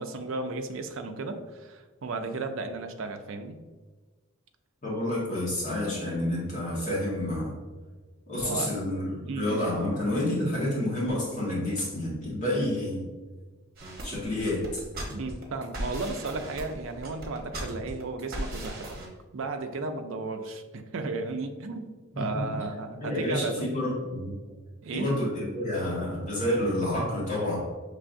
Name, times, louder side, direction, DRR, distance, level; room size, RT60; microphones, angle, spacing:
voice 1, 0.0-3.6 8.3-8.7 9.3-9.6 15.1-19.0 19.3-23.7 24.8-25.1, right 3 dB, 65° right, 6 dB, 0.4 m, -34 dB
voice 2, 4.8-7.5 8.3-13.1 14.0-14.8 22.1-22.3 23.0-24.3 24.9-27.6, left 1 dB, 35° left, -6 dB, 1.4 m, -29 dB
sound 1, 13.8-19.1, right 1 dB, 45° right, 1.0 m, -38 dB
5.7 x 3.3 x 2.5 m, 1.3 s
head